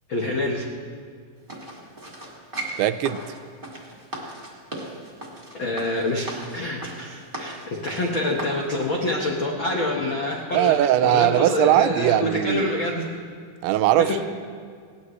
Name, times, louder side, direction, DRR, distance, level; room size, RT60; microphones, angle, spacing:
voice 1, 0.1-0.7 5.6-13.0 14.1-14.2, left 2 dB, 75° left, -1 dB, 1.1 m, -26 dB
sound 1, 1.5-8.6 9.2-9.3, right 1 dB, 20° right, 1.9 m, -37 dB
voice 2, 2.8-3.3 10.5-12.7 13.6-14.1, right 13 dB, 90° right, 12 dB, 2.6 m, -20 dB
19.5 x 18.5 x 3.2 m, 2.1 s
omnidirectional pair, 4.4 m